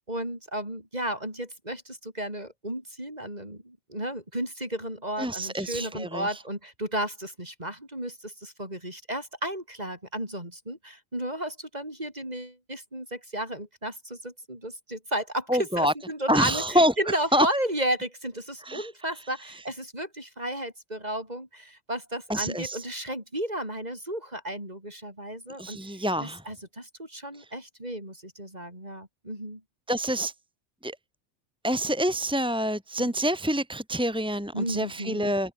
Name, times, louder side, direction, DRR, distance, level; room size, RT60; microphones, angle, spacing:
voice 1, 0.0-29.6 33.0-33.1 34.5-35.3, right 1 dB, 35° right, 8.1 m, -33 dB
voice 2, 5.2-6.4 15.5-15.9 16.3-17.5 18.6-18.9 22.3-22.8 25.6-26.4 27.4-27.5 29.9-30.3 30.8-31.0 31.6-35.5, equal, 5° right, 3.0 m, -26 dB
omnidirectional pair, 1.2 m